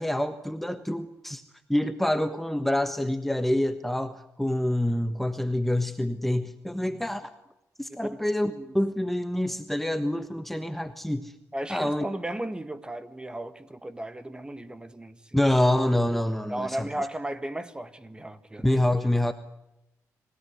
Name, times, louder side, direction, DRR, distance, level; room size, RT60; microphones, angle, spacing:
voice 1, 0.0-1.4 1.7-7.3 7.8-11.3 11.7-12.0 15.3-16.9 18.6-19.3, left 1 dB, 5° left, 1.4 m, -26 dB
voice 2, 11.5-15.4 16.5-19.1, right 1 dB, 15° right, 1.8 m, -35 dB
26.5 x 17.0 x 9.6 m
cardioid pair, 80°, 6 cm